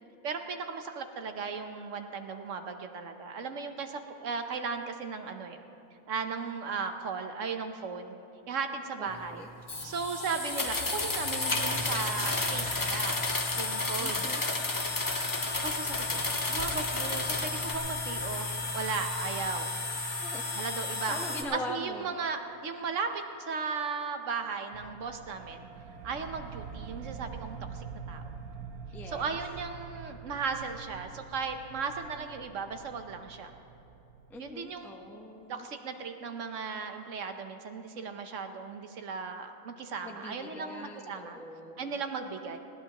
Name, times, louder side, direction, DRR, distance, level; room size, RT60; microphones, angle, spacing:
voice 1, 0.2-5.6 6.1-8.2 8.5-9.4 9.8-13.2 13.5-14.3 15.6-16.2 16.5-19.8 20.6-21.2 21.5-25.7 26.0-28.2 29.1-33.5 34.4-34.9 35.5-41.4 41.8-42.6, right 5 dB, 60° right, 6 dB, 1.2 m, -36 dB
voice 2, 9.0-9.5 14.0-14.4 20.2-20.4 21.0-22.2 28.9-29.4 34.3-35.7 40.0-42.0, left 1 dB, ahead, 1 dB, 0.8 m, -42 dB
sound 1, 9.1-21.4, left 2 dB, 45° left, 2.2 m, -34 dB
sound 2, 10.4-17.7, left 2 dB, 30° left, 0.4 m, -33 dB
sound 3, 24.7-34.9, right 6 dB, 85° right, 1.3 m, -45 dB
20.0 x 16.0 x 3.0 m, 2.9 s
omnidirectional pair, 1.5 m